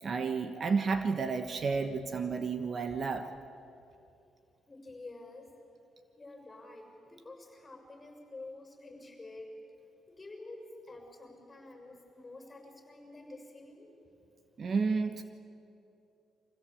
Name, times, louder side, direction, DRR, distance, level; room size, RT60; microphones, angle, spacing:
voice 1, 0.0-3.3 14.6-15.2, right 4 dB, 45° right, 8 dB, 1.2 m, -31 dB
voice 2, 4.7-5.5 6.2-9.6 10.1-14.0, left 2 dB, 20° left, 3 dB, 6.4 m, -49 dB
24.5 x 16.0 x 8.5 m, 2.7 s
cardioid pair, 90°, 0 cm